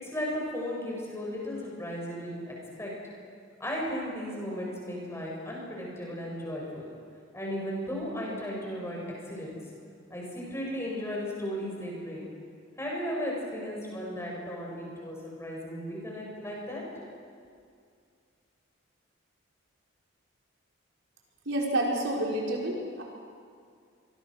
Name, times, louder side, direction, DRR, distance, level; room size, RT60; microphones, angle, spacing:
voice 1, 0.0-2.9 3.6-6.9 7.3-9.6 10.1-12.3 12.8-16.8, equal, 15° left, -3 dB, 7.7 m, -35 dB
voice 2, 21.5-23.0, right 1 dB, 70° right, -2 dB, 5.2 m, -29 dB
29.0 x 24.0 x 6.6 m, 2.2 s
head